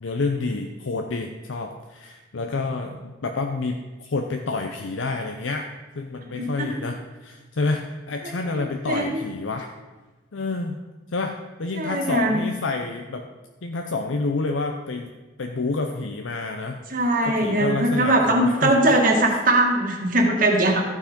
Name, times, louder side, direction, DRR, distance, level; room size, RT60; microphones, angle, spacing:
voice 1, 0.0-5.7 5.9-9.7 10.3-10.8 11.1-11.3 11.6-13.3 13.6-15.1 15.4-19.0 19.3-19.4, left 3 dB, 85° left, 4 dB, 0.7 m, -29 dB
voice 2, 6.4-6.7 8.2-8.3 8.9-9.1 11.7-12.4 16.9-20.8, right 1 dB, 45° right, 0 dB, 1.7 m, -20 dB
14.0 x 5.0 x 5.2 m, 1.2 s
head